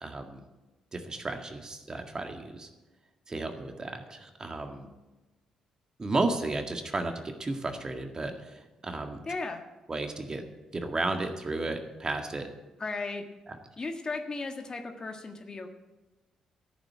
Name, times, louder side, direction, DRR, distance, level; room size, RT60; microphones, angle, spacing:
voice 1, 0.0-0.4 0.9-2.7 3.3-4.9 6.0-7.1 7.4-9.2 9.9-10.4 10.7-12.5, right 2 dB, 30° right, 5 dB, 1.9 m, -33 dB
voice 2, 9.3-9.6 12.8-13.2 13.8-15.7, left 3 dB, 35° left, 5 dB, 1.6 m, -35 dB
13.5 x 7.2 x 8.6 m, 1.1 s
hypercardioid pair, 45°, 2 cm